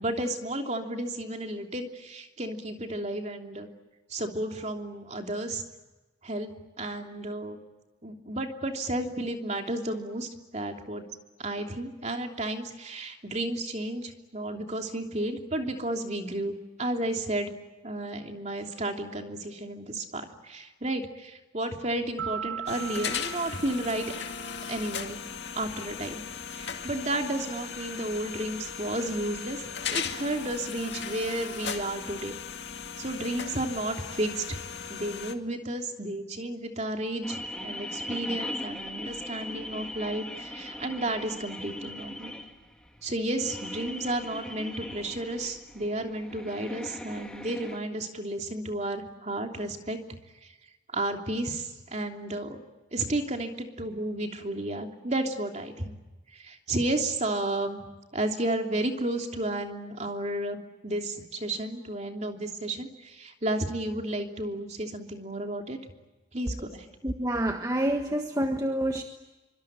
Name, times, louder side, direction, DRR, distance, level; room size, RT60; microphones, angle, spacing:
voice 1, 0.0-3.7 4.1-5.6 6.2-6.5 6.8-7.6 8.0-11.0 11.4-17.5 17.8-24.1 24.7-25.2 25.6-26.2 26.5-32.4 33.0-34.6 34.9-42.3 43.0-50.0 50.4-50.5 50.9-52.6 52.9-55.9 56.3-57.8 58.1-65.8 66.3-66.9, right 1 dB, 35° right, 3.1 m, -32 dB
sound 1, 22.2-24.9, right 8 dB, 60° right, 1.4 m, -39 dB
sound 2, 22.7-35.3, left 7 dB, 60° left, 2.2 m, -37 dB
sound 3, 37.2-47.8, left 1 dB, 5° left, 2.4 m, -39 dB
voice 2, 67.0-69.0, right 1 dB, 20° right, 1.5 m, -27 dB
26.0 x 24.5 x 9.0 m
head